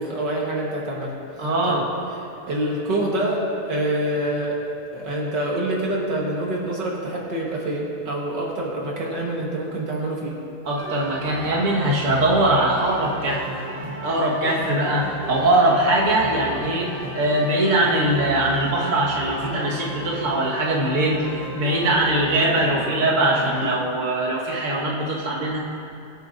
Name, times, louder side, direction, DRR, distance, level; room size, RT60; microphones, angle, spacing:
voice 1, 0.0-1.8 2.5-4.6 4.9-10.4, right 1 dB, 65° right, -3 dB, 2.0 m, -26 dB
voice 2, 1.4-1.8 10.6-13.4 14.0-25.6, right 1 dB, 45° right, -5 dB, 1.8 m, -21 dB
sound 1, 10.8-23.7, right 1 dB, 25° right, 1.3 m, -34 dB
23.0 x 7.9 x 2.6 m, 2.6 s
omnidirectional pair, 2.1 m